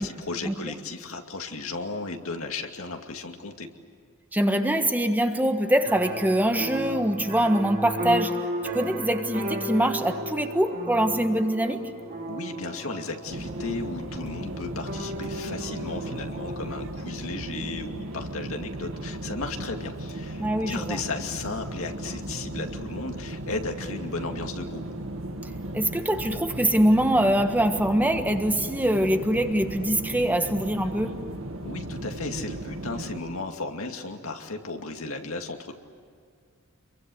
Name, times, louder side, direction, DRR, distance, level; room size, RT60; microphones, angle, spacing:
voice 1, 0.0-3.7 12.3-24.8 31.6-35.7, left 3 dB, 70° left, 4 dB, 2.4 m, -35 dB
voice 2, 4.3-8.4 8.7-11.9 20.4-21.0 25.7-31.1, right 1 dB, 10° right, 6 dB, 1.4 m, -23 dB
sound 1, 5.8-17.1, right 1 dB, 40° right, 3.1 m, -35 dB
sound 2, 13.3-33.2, right 1 dB, 65° right, 2.1 m, -36 dB
28.0 x 23.0 x 7.9 m, 2.2 s
head